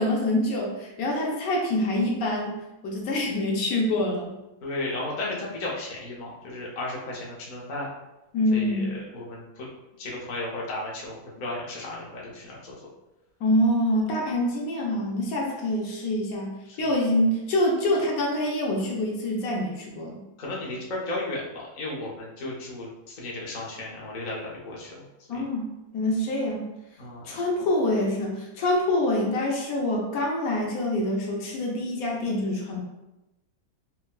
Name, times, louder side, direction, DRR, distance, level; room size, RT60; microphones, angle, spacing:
voice 1, 0.0-2.6 2.8-4.3 8.3-8.9 13.4-16.5 16.8-20.2 25.3-25.7 25.9-26.7 27.2-32.8, left 1 dB, 75° left, -1 dB, 1.1 m, -25 dB
voice 2, 4.6-7.9 8.5-8.8 9.1-9.7 10.0-11.1 11.4-12.8 20.4-25.0 25.3-25.4 27.0-27.3, left 2 dB, 45° left, -4 dB, 0.6 m, -34 dB
4.2 x 2.2 x 2.2 m, 0.98 s
omnidirectional pair, 1.6 m